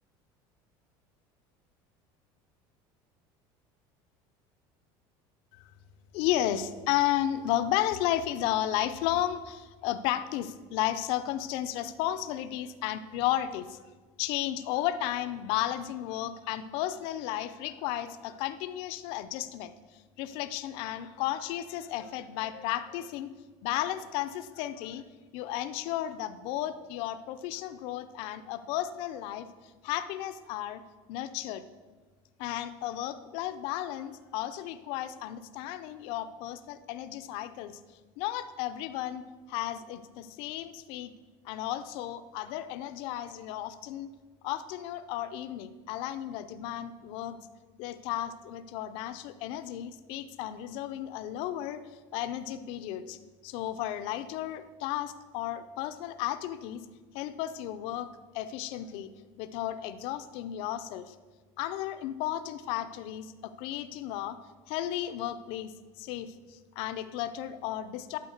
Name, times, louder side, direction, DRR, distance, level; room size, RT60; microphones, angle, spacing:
voice 1, 6.1-13.8 14.2-23.3 23.6-25.0 25.3-29.5 29.8-30.8 31.1-31.6 32.4-37.8 38.2-41.1 41.4-44.1 44.4-47.4 47.8-56.9 57.1-58.1 58.3-59.1 59.4-61.2 61.6-64.4 64.7-68.2, left 12 dB, 60° left, 12 dB, 0.6 m, -33 dB
12.0 x 4.3 x 6.5 m, 1.3 s
cardioid pair, 170°, 11 cm